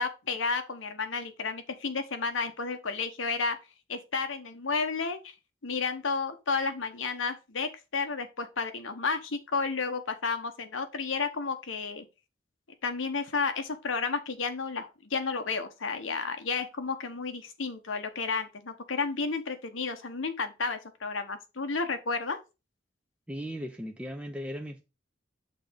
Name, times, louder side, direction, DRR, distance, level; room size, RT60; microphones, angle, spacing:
voice 1, 0.0-3.6 3.9-5.3 5.6-12.0 12.8-22.4, left 4 dB, 85° left, 1.1 m, -32 dB
voice 2, 23.3-24.8, equal, 5° right, 0.5 m, -37 dB
6.7 x 3.4 x 5.1 m
head